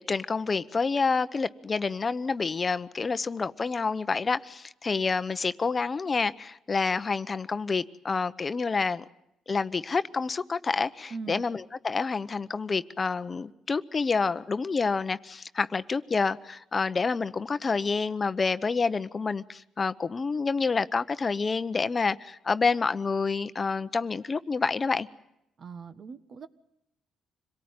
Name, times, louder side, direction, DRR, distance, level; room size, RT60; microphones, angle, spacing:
voice 1, 0.0-9.0 9.5-25.1, left 4 dB, 35° left, 0.9 m, -28 dB
voice 2, 11.1-11.5 25.6-26.5, right 5 dB, 50° right, 1.4 m, -40 dB
26.5 x 18.5 x 9.6 m
cardioid pair, 90°, 0 cm